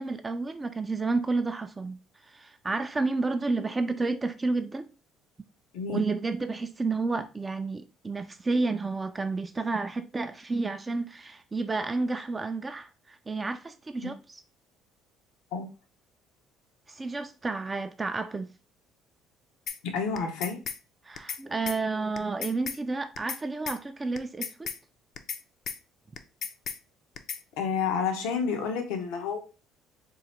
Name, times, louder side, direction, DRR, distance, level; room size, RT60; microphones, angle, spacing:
voice 1, 0.0-4.9 5.9-14.4 16.9-18.5 21.0-24.7, right 3 dB, 20° right, 0.3 m, -31 dB
voice 2, 5.7-6.1 14.0-14.1 15.5-15.7 19.8-20.6 27.6-29.4, left 5 dB, 90° left, 0.8 m, -29 dB
sound 1, 19.7-19.8 20.2-20.8 21.2-21.4 21.7-21.8 22.2-22.8 23.2-23.4 23.7-23.8 24.2-24.8 25.2-25.4 25.7-25.8 26.2-26.8 27.2-27.4, left 7 dB, 50° left, 0.5 m, -35 dB
3.7 x 2.1 x 4.2 m
cardioid pair, 120°, 0 cm